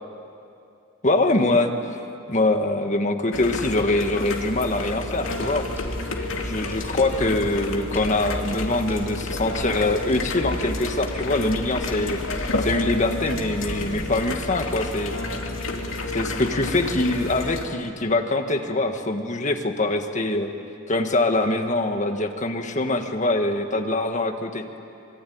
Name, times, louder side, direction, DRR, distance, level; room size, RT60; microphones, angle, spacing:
voice 1, 1.0-1.7 2.3-5.7 6.4-12.2 12.6-15.2 16.1-20.5 20.9-24.7, left 2 dB, 35° left, 5 dB, 1.7 m, -23 dB
sound 1, 3.3-17.7, left 2 dB, 75° left, 2.6 m, -30 dB
sound 2, 5.8-14.4, equal, 10° right, 5.6 m, -37 dB
Marimba xylophone, 13.3-16.3, right 5 dB, 80° right, 2.6 m, -43 dB
26.5 x 23.0 x 9.4 m, 2.6 s
head